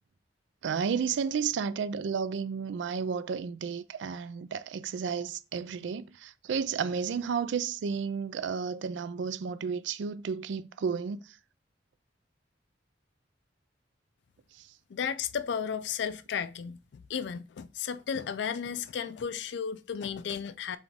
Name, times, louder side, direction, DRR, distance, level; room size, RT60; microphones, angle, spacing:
voice 1, 0.6-11.4 14.5-14.7, right 6 dB, 75° right, 0.4 m, -32 dB
voice 2, 14.9-20.8, left 7 dB, 70° left, 0.4 m, -34 dB
4.2 x 3.3 x 3.4 m
head